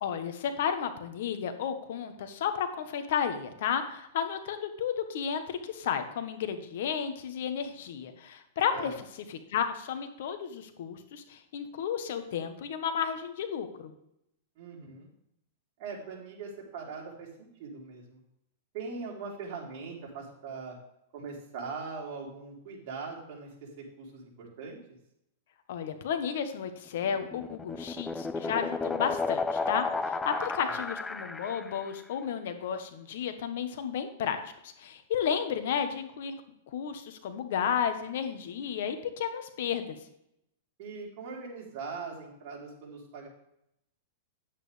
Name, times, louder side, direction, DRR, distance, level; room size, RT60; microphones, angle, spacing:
voice 1, 0.0-8.9 9.3-13.9 25.7-34.4 34.6-36.4 36.7-40.0, left 8 dB, 65° left, 8 dB, 1.3 m, -32 dB
voice 2, 14.6-15.1 15.8-18.2 18.7-20.8 21.1-24.8 30.6-30.7 40.8-43.3, right 4 dB, 50° right, -3 dB, 3.8 m, -41 dB
sound 1, 27.0-31.8, left 3 dB, 10° left, 0.4 m, -33 dB
10.0 x 8.6 x 3.4 m, 0.79 s
supercardioid pair, 150°, 0 cm